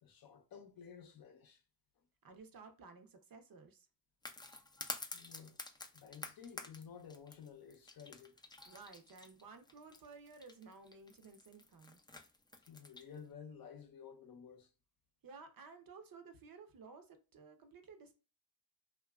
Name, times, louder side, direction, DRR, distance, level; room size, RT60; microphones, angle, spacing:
voice 1, 0.0-1.6 5.1-5.6 5.9-8.3 12.7-14.7, left 7 dB, 55° left, 0.6 m, -53 dB
voice 2, 2.2-3.9 8.6-12.0 15.2-18.1, right 4 dB, 50° right, 0.7 m, -55 dB
sound 1, 4.2-13.2, left 2 dB, 10° left, 0.4 m, -49 dB
2.8 x 2.3 x 2.3 m
cardioid pair, 55°, 43 cm